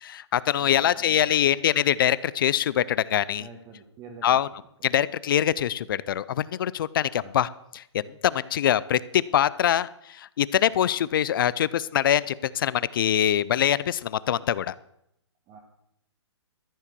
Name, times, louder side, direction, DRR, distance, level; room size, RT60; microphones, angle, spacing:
voice 1, 0.0-3.5 4.2-4.5 4.8-7.5 7.7-14.7, left 10 dB, 45° left, 19 dB, 0.5 m, -24 dB
voice 2, 0.6-1.6 3.3-4.4 4.9-5.0 7.1-7.4 15.5-15.6, right 5 dB, 20° right, 0 dB, 1.5 m, -48 dB
14.0 x 7.3 x 6.8 m, 0.78 s
hypercardioid pair, 150°, 15 cm